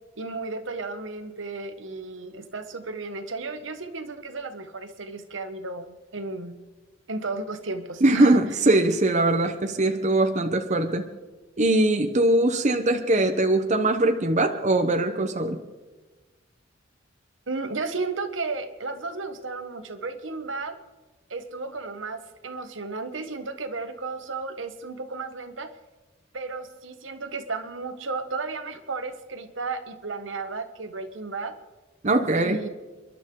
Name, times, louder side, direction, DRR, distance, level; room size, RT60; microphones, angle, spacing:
voice 1, 0.2-6.6 7.1-8.4 17.5-20.8 21.3-25.7 26.3-31.6 32.4-32.7, right 3 dB, 80° right, 9 dB, 1.3 m, -33 dB
voice 2, 8.0-11.1 11.6-15.6 32.0-32.6, right 2 dB, 40° right, 6 dB, 0.9 m, -21 dB
29.5 x 11.5 x 3.8 m, 1.2 s
head